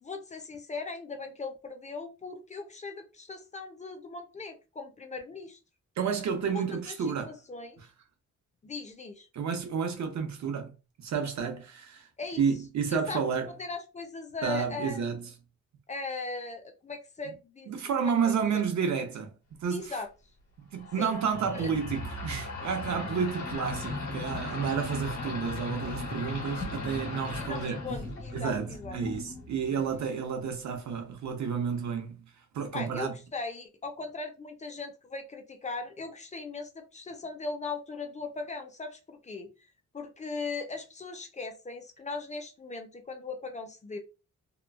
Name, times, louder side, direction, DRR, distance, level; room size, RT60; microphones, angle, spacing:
voice 1, 0.0-5.6 6.5-7.0 7.2-7.8 8.6-9.3 12.2-12.4 12.9-15.0 15.9-18.3 19.7-20.1 21.0-21.2 21.5-21.7 24.4-24.6 27.3-29.0 32.7-39.7 39.9-44.0, left 3 dB, 25° left, 0.4 m, -39 dB
voice 2, 6.0-7.3 9.3-10.7 11.0-12.1 12.4-13.5 14.4-15.3 17.7-19.9 20.6-27.8 28.3-32.2 32.5-33.1, right 6 dB, 75° right, 0.7 m, -31 dB
sound 1, 20.8-30.2, left 2 dB, 90° left, 1.2 m, -37 dB
2.9 x 2.3 x 2.3 m
wide cardioid pair, 160°, 29 cm